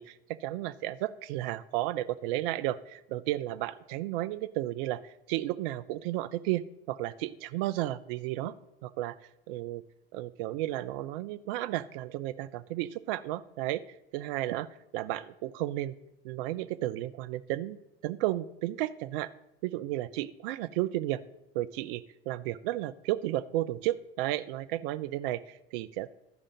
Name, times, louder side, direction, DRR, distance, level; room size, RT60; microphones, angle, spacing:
voice 1, 0.0-8.5 8.8-9.2 9.5-9.8 10.1-13.8 14.1-14.7 14.9-15.9 16.2-17.8 18.0-19.3 19.6-21.2 21.5-26.1, right 15 dB, 65° right, 14 dB, 0.5 m, -33 dB
12.5 x 4.9 x 5.7 m, 0.88 s
hypercardioid pair, 75°, 30 cm